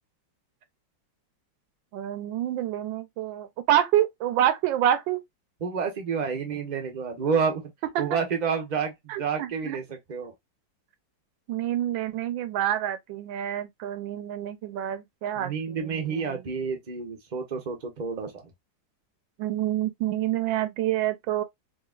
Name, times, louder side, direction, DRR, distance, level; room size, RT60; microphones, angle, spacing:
voice 1, 1.9-5.2 7.9-8.1 9.1-9.8 11.5-16.4 19.4-21.4, right 12 dB, 80° right, 1.3 m, -27 dB
voice 2, 5.6-7.7 8.0-10.3 15.4-18.5, right 6 dB, 45° right, 0.6 m, -29 dB
3.8 x 2.8 x 2.3 m
omnidirectional pair, 2.1 m